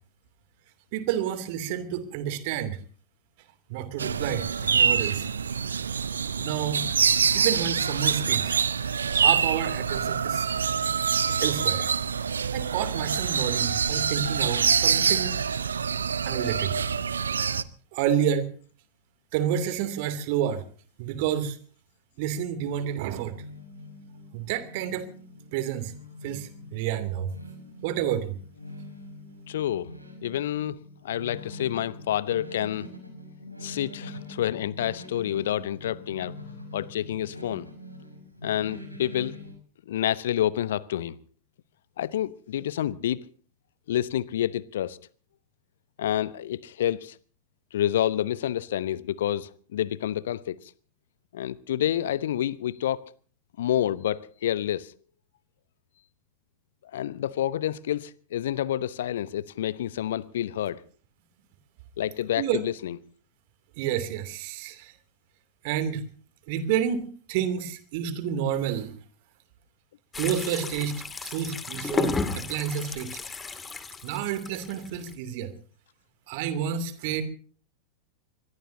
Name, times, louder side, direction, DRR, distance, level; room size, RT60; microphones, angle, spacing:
voice 1, 0.9-2.8 3.7-5.3 6.4-6.9 7.3-8.6 8.8-10.5 11.4-11.9 12.5-15.4 16.2-16.8 17.9-18.5 19.3-20.6 21.0-21.6 22.2-23.4 24.3-25.1 25.5-25.9 26.2-27.3 27.8-28.4 62.4-62.6 63.8-64.9 65.6-66.0 66.5-68.9 70.2-73.2 74.0-75.5 76.3-77.2, right 9 dB, 50° right, 2.8 m, -29 dB
sound 1, 4.0-17.6, right 6 dB, 70° right, 0.9 m, -25 dB
sound 2, 23.1-39.5, left 1 dB, 90° right, 5.8 m, -44 dB
voice 2, 29.5-29.9 30.2-32.9 33.6-36.3 36.7-37.7 38.4-39.4 39.9-41.2 42.0-43.2 43.9-45.0 46.0-47.2 47.7-50.7 51.3-53.0 53.6-54.9 56.9-60.8 62.0-63.0, left 11 dB, 60° left, 0.9 m, -28 dB
sound 3, 70.1-75.1, left 4 dB, 15° left, 2.4 m, -33 dB
24.5 x 21.5 x 2.8 m
figure-of-eight pair, 90°, 0 cm